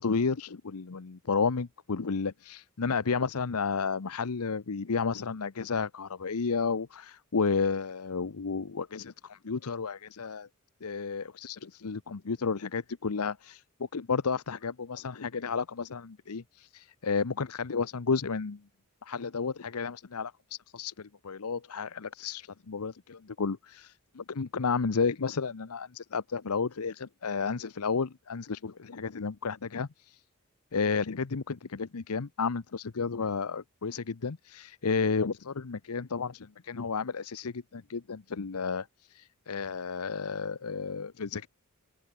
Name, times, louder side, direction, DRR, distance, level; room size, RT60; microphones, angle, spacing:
voice 1, 0.0-10.5 10.8-18.6 19.0-30.2 30.7-41.5, left 5 dB, 80° left, 0.8 m, -32 dB
head